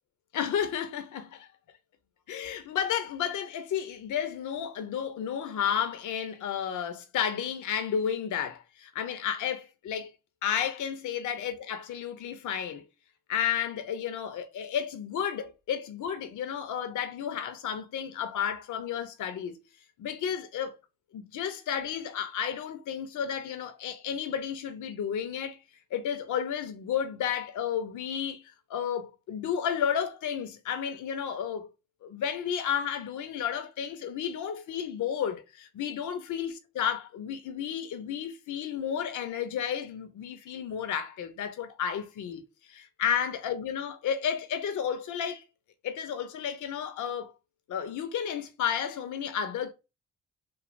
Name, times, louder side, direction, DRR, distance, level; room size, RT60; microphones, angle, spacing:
voice 1, 0.3-1.5 2.3-10.1 10.4-12.8 13.3-19.6 20.0-20.8 21.1-25.6 25.9-28.4 28.7-31.7 32.0-45.4 45.8-47.3 47.7-49.7, left 8 dB, 50° left, 0.6 m, -32 dB
3.3 x 2.3 x 2.5 m
hypercardioid pair, 45°, 38 cm